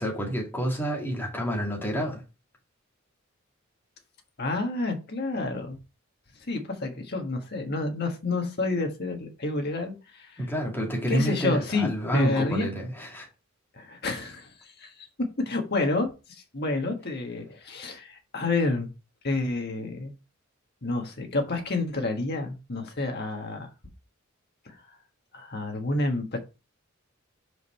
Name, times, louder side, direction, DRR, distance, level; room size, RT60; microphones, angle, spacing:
voice 1, 0.0-2.2 10.4-13.3, equal, 10° left, 2.2 m, -29 dB
voice 2, 4.4-5.8 6.5-10.5 11.1-12.7 13.7-15.1 15.4-18.9 19.2-20.1 20.8-23.7 24.6-24.9 25.3-26.4, left 3 dB, 50° left, 1.5 m, -29 dB
5.2 x 4.9 x 4.2 m
head